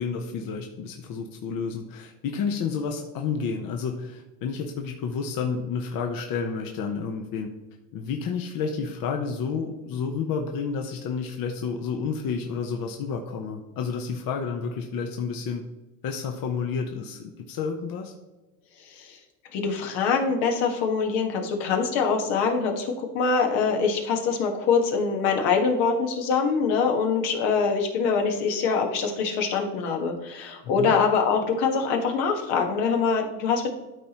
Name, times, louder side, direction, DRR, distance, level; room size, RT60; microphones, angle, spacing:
voice 1, 0.0-7.5 7.9-15.6 16.0-18.1 30.6-30.9, left 5 dB, 50° left, 3 dB, 1.0 m, -30 dB
voice 2, 18.9-19.2 19.5-33.7, left 5 dB, 75° left, 3 dB, 1.6 m, -24 dB
12.5 x 4.2 x 3.0 m, 1.1 s
supercardioid pair, 100°, 46 cm